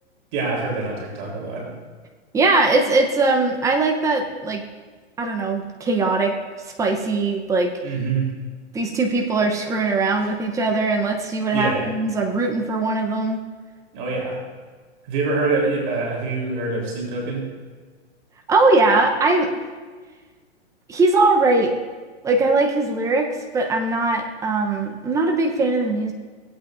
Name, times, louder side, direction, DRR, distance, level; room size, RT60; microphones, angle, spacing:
voice 1, 0.3-1.7 7.8-8.3 11.5-11.9 13.9-14.3 15.1-17.5, right 3 dB, 45° right, -3 dB, 3.7 m, -25 dB
voice 2, 2.3-4.6 5.2-6.3 6.8-7.7 8.7-13.4 18.5-19.5 20.9-21.7 22.2-23.3 23.5-26.1, right 3 dB, 10° right, 2 dB, 0.8 m, -20 dB
17.0 x 8.5 x 2.6 m, 1.4 s
hypercardioid pair, 140°, 34 cm